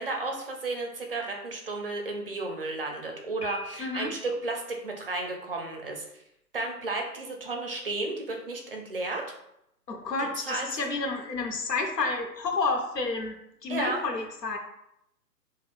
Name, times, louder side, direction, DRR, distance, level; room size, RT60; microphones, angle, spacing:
voice 1, 0.0-6.2 6.5-9.2 10.2-10.7 13.7-14.0, right 2 dB, 40° right, 2 dB, 0.4 m, -33 dB
Piano, 3.4-4.4, left 2 dB, 20° left, 0.5 m, -42 dB
voice 2, 3.8-4.1 9.9-13.3 13.6-14.6, left 3 dB, 80° left, 3 dB, 0.9 m, -30 dB
2.6 x 2.3 x 3.4 m, 0.79 s
figure-of-eight pair, 140°, 48 cm